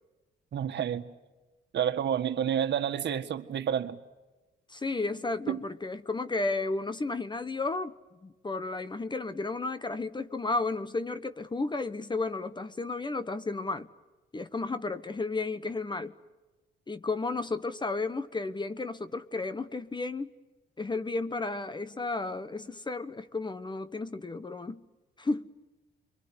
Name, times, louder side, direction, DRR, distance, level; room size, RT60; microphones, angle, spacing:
voice 1, 0.5-1.0 1.7-4.0 5.5-5.6, right 9 dB, 60° right, 1.8 m, -29 dB
voice 2, 4.7-8.0 8.2-13.9 14.3-16.1 16.9-20.3 20.8-24.8 25.2-25.5, left 3 dB, 20° left, 1.2 m, -33 dB
27.0 x 24.0 x 8.1 m
cardioid pair, 90°, 20 cm